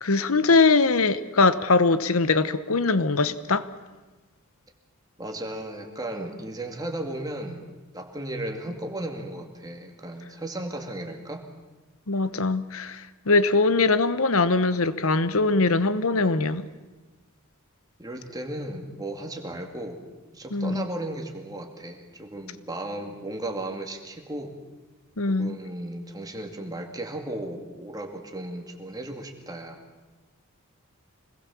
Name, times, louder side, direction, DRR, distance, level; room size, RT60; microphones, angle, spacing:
voice 1, 0.0-3.7 12.1-16.7 20.5-20.9 25.2-25.6, left 3 dB, 70° left, 1.1 m, -22 dB
voice 2, 5.2-7.7 7.9-11.5 18.0-20.1 20.3-24.6 25.3-29.8, right 1 dB, 15° right, 2.4 m, -35 dB
25.5 x 20.5 x 7.2 m
head